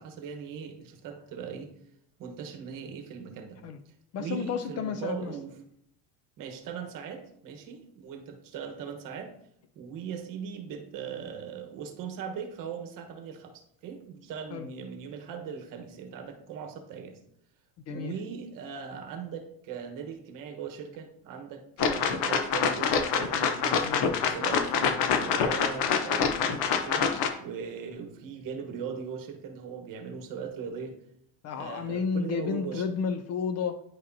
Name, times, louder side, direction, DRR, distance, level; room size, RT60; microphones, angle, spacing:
voice 1, 0.0-1.7 2.2-3.6 3.8-3.9 4.2-5.5 6.4-9.3 9.7-17.2 17.9-23.9 24.2-31.0 31.6-32.9, right 7 dB, 50° right, 5 dB, 1.3 m, -39 dB
voice 2, 4.1-5.3 14.5-14.7 17.9-18.1 23.8-24.3 31.4-33.8, left 6 dB, 40° left, 9 dB, 0.4 m, -32 dB
sound 1, 21.8-27.3, left 6 dB, 75° left, 1.0 m, -26 dB
9.9 x 5.1 x 2.7 m, 0.72 s
cardioid pair, 150°, 43 cm